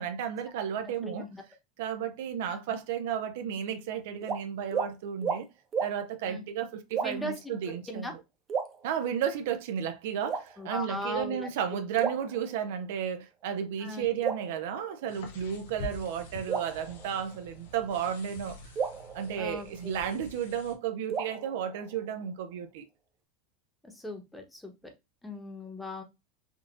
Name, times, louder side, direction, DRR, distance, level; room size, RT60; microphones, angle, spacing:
voice 1, 0.0-1.3 1.8-5.5 5.8-8.2 8.8-18.7 19.1-22.9, right 8 dB, 70° right, 0.4 m, -33 dB
voice 2, 0.7-1.4 2.5-2.6 6.3-6.4 7.0-8.1 10.6-11.5 13.8-14.1 19.4-20.1 23.8-24.7 25.2-26.0, left 1 dB, 5° left, 0.9 m, -39 dB
sound 1, 4.2-4.4 4.7-4.9 5.2-5.4 5.7-5.9 6.9-7.4 8.5-9.3 10.3-11.0 12.0-13.0 14.2-15.4 16.5-17.7 18.8-20.2 21.1-22.3, right 6 dB, 35° right, 0.7 m, -35 dB
sound 2, 15.1-20.7, left 2 dB, 75° left, 0.7 m, -46 dB
3.6 x 2.4 x 2.4 m
hypercardioid pair, 85°, 0 cm